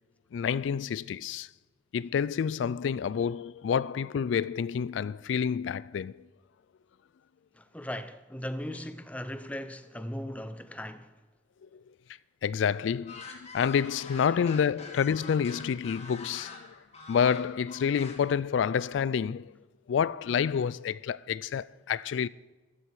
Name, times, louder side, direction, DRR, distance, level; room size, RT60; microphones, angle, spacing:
voice 1, 0.3-1.5 1.9-6.3 11.7-11.8 12.4-16.7 17.1-19.5 19.9-22.3, left 7 dB, 85° left, 0.3 m, -28 dB
voice 2, 7.5-11.1, equal, 10° left, 0.7 m, -38 dB
sound 1, 13.1-18.4, left 4 dB, 35° left, 2.5 m, -45 dB
15.0 x 12.5 x 4.8 m
head